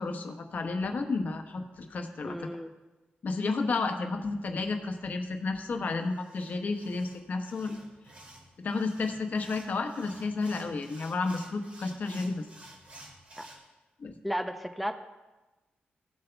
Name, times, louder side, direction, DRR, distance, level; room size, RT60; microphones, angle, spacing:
voice 1, 0.0-2.5 3.2-7.8 8.6-12.5 14.0-14.1, left 3 dB, 50° left, 4 dB, 1.1 m, -32 dB
voice 2, 2.2-2.7 13.4-13.5 14.2-15.0, equal, ahead, 7 dB, 0.5 m, -34 dB
sound 1, 6.0-13.6, right 1 dB, 40° right, 2.6 m, -52 dB
17.0 x 7.7 x 2.3 m, 1.1 s
wide cardioid pair, 120°, 4 cm